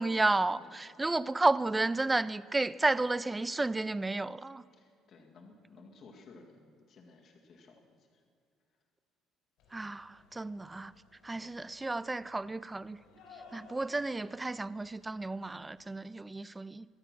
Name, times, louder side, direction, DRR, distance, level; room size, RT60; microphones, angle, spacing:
voice 1, 0.0-4.6 9.7-10.9 11.2-13.0 13.5-16.9, right 2 dB, 10° right, 0.3 m, -32 dB
voice 2, 0.6-1.1 4.7-8.2, left 3 dB, 45° left, 2.0 m, -57 dB
sound 1, 9.6-16.1, left 4 dB, 80° left, 4.2 m, -60 dB
24.0 x 9.2 x 6.0 m
cardioid pair, 155°, 0 cm